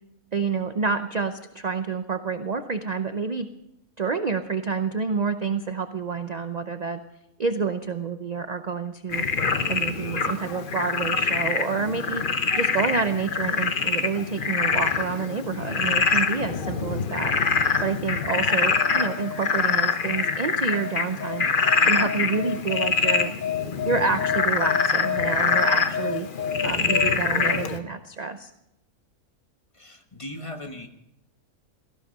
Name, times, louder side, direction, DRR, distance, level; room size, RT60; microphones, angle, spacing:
voice 1, 0.3-3.5 4.0-7.0 7.4-9.2 9.7-17.3 17.8-21.5 21.8-23.3 23.8-26.3 26.6-28.5, right 5 dB, 45° right, 9 dB, 0.5 m, -28 dB
Frog, 9.1-27.8, left 5 dB, 40° left, 1.0 m, -24 dB
voice 2, 29.7-30.9, left 1 dB, 20° left, 5 dB, 1.3 m, -38 dB
17.5 x 14.5 x 5.4 m, 0.84 s
omnidirectional pair, 1.6 m